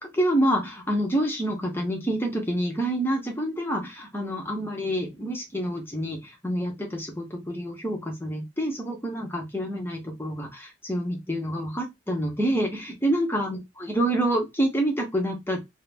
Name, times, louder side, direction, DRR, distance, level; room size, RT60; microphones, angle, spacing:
voice 1, 0.1-15.6, right 1 dB, 10° left, 1 dB, 0.7 m, -27 dB
2.5 x 2.0 x 3.2 m, 0.20 s
head